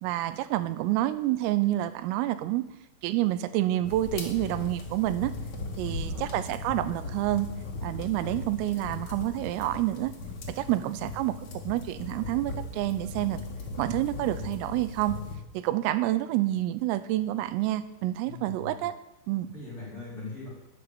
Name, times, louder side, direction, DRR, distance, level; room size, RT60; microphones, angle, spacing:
voice 1, 0.0-2.6 3.0-5.3 5.8-7.5 7.8-10.1 10.5-13.4 13.8-15.2 15.5-18.9 19.3-19.5, right 15 dB, 85° right, 13 dB, 3.5 m, -28 dB
sound 1, 3.8-15.4, left 3 dB, 50° left, 2.4 m, -38 dB
voice 2, 5.8-6.3 10.6-11.0 18.2-18.8 19.5-20.5, left 3 dB, 15° left, -5 dB, 6.0 m, -41 dB
13.0 x 9.2 x 9.4 m, 0.93 s
omnidirectional pair, 5.9 m